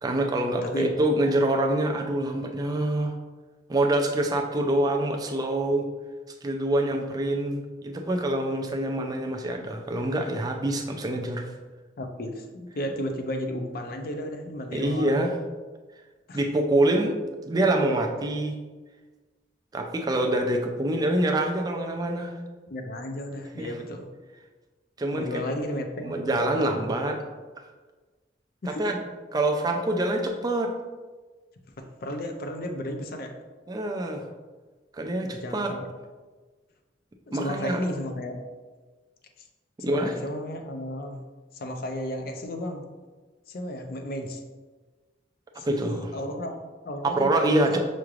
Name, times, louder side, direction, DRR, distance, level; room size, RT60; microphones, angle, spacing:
voice 1, 0.0-3.1 3.7-5.9 6.4-11.5 14.7-15.3 16.3-17.2 17.5-18.6 19.7-22.3 23.6-23.7 25.0-25.4 26.0-27.2 28.7-29.0 29.3-30.7 33.7-34.2 34.9-35.7 37.3-37.8 39.8-40.1 45.6-46.1 47.2-47.8, right 1 dB, 20° right, 3 dB, 0.4 m, -25 dB
voice 2, 0.6-1.3 12.0-15.2 16.3-16.4 22.7-24.1 25.1-26.9 28.6-28.9 31.8-33.4 35.2-35.8 37.3-38.4 39.8-41.2 41.5-42.9 43.5-44.4 45.6-47.3 47.7-47.8, left 1 dB, 55° left, 5 dB, 0.5 m, -33 dB
5.8 x 3.1 x 2.4 m, 1.3 s
head